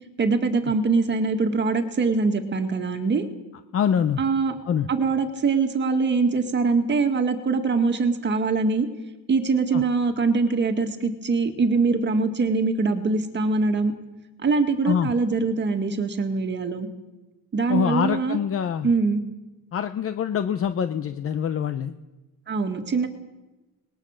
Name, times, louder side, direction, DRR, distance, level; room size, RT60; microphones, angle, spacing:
voice 1, 0.2-3.2 4.2-4.5 4.9-8.9 9.3-13.9 14.4-16.9 17.5-18.4 18.8-19.2 22.5-23.1, right 4 dB, 30° right, 6 dB, 2.0 m, -23 dB
voice 2, 3.7-4.2 4.7-4.9 9.7-9.8 14.8-15.1 17.7-18.9 19.7-21.9, left 8 dB, 40° left, 10 dB, 0.8 m, -25 dB
24.5 x 20.5 x 6.5 m, 1.1 s
cardioid pair, 165°, 34 cm